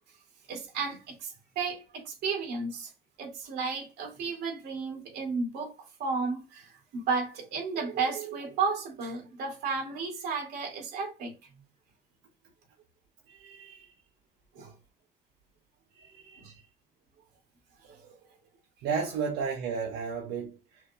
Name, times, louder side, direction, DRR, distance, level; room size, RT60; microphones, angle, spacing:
voice 1, 0.5-2.9 3.2-5.7 6.0-11.3 14.5-14.7 16.4-16.5 17.8-18.1, right 4 dB, 70° right, 2.5 m, -33 dB
voice 2, 13.3-13.9 15.9-16.6 18.8-20.8, right 6 dB, 85° right, 1.0 m, -34 dB
6.1 x 2.8 x 2.4 m
cardioid pair, 110°, 17 cm